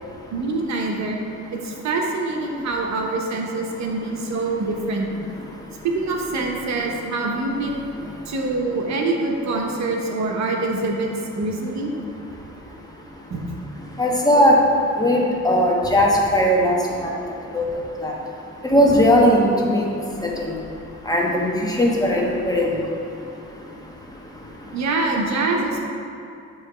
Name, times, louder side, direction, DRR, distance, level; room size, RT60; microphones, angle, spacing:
voice 1, 0.3-1.2 1.5-5.1 5.8-7.8 8.3-11.1 11.4-11.9 13.3-13.4 24.7-25.8, right 3 dB, 65° right, 0 dB, 1.0 m, -25 dB
voice 2, 14.0-14.6 15.0-17.1 17.5-17.6 18.0-18.1 18.6-19.9 21.1-22.7, equal, 10° left, -3 dB, 1.1 m, -18 dB
8.9 x 3.1 x 4.9 m, 2.7 s
cardioid pair, 90°, 30 cm